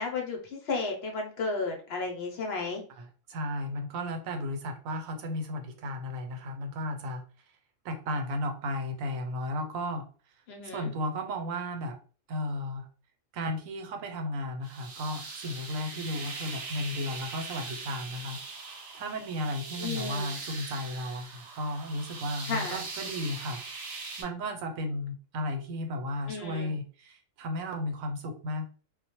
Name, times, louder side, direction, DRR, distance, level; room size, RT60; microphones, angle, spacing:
voice 1, 0.0-2.8 10.5-10.9 19.8-20.3 22.5-22.8 26.3-26.7, left 4 dB, 65° left, 2 dB, 0.7 m, -33 dB
voice 2, 3.0-7.2 7.8-10.1 10.6-12.0 12.3-12.9 13.3-28.7, left 1 dB, 85° right, 6 dB, 1.0 m, -34 dB
sound 1, 14.6-24.2, right 4 dB, 60° right, 0.8 m, -41 dB
2.1 x 2.0 x 2.8 m, 0.39 s
omnidirectional pair, 1.4 m